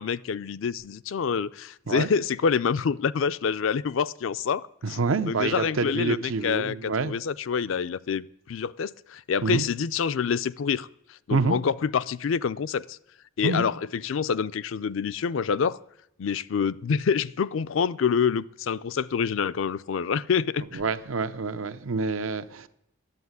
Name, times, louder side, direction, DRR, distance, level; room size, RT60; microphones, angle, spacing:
voice 1, 0.0-5.0 5.3-13.0 13.4-15.8 16.2-20.8, left 6 dB, 70° left, 0.4 m, -27 dB
voice 2, 4.8-7.1 9.4-9.7 11.3-11.6 13.4-13.7 20.7-22.7, right 4 dB, 80° right, 0.7 m, -27 dB
10.5 x 8.0 x 9.4 m
head